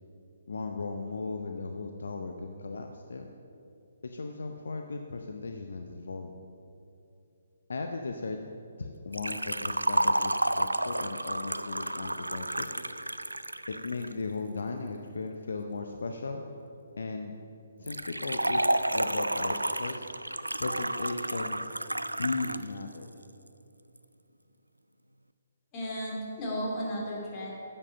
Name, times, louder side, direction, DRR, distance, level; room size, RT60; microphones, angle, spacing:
voice 1, 0.5-3.3 4.0-6.3 7.7-8.4 8.8-12.7 13.7-16.4 17.0-17.3 17.8-18.6 18.9-20.1 20.6-21.7 22.2-23.1, left 3 dB, 60° left, 5 dB, 0.6 m, -36 dB
Liquid, 9.1-14.1 17.9-22.7 22.9-23.0 24.0-24.1, right 1 dB, 85° right, 0.3 m, -31 dB
voice 2, 25.7-27.5, equal, 25° left, -3 dB, 2.5 m, -34 dB
9.7 x 7.5 x 5.6 m, 2.7 s
figure-of-eight pair, 135°, 0 cm